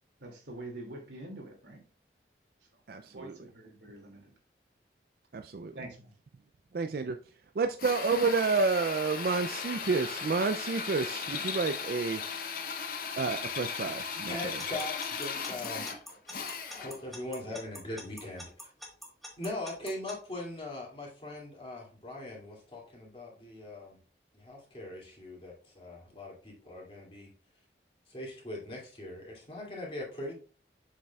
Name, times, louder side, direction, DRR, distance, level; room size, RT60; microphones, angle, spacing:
voice 1, 0.2-1.8 3.0-4.3 5.7-6.1, right 2 dB, 85° right, 2.4 m, -45 dB
voice 2, 2.9-3.4 5.3-5.8 6.7-12.2 13.2-14.6, right 4 dB, 55° right, 0.4 m, -30 dB
Drill, 7.8-17.1, left 6 dB, 50° left, 0.8 m, -37 dB
voice 3, 14.3-15.9 16.7-18.5 19.4-24.0 24.3-27.3 28.1-30.3, left 1 dB, 30° left, 2.5 m, -40 dB
Alarm / Clock, 14.6-20.1, equal, ahead, 1.4 m, -44 dB
7.4 x 6.7 x 2.3 m
head